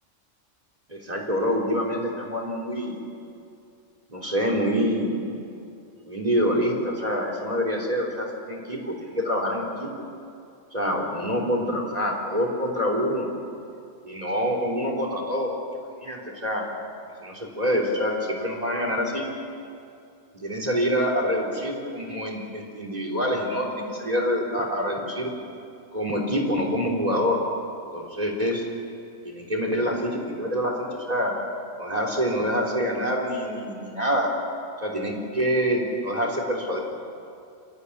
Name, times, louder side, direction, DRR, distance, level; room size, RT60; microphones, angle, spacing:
voice 1, 0.9-3.0 4.1-5.2 6.0-9.9 10.7-13.3 14.0-15.5 16.0-16.6 17.2-19.2 20.3-25.3 25.9-27.4 27.9-28.7 29.2-30.7 31.1-31.3 31.8-34.3 34.8-36.8, equal, 30° right, 0 dB, 3.6 m, -26 dB
26.5 x 14.0 x 9.8 m, 2.5 s
omnidirectional pair, 1.2 m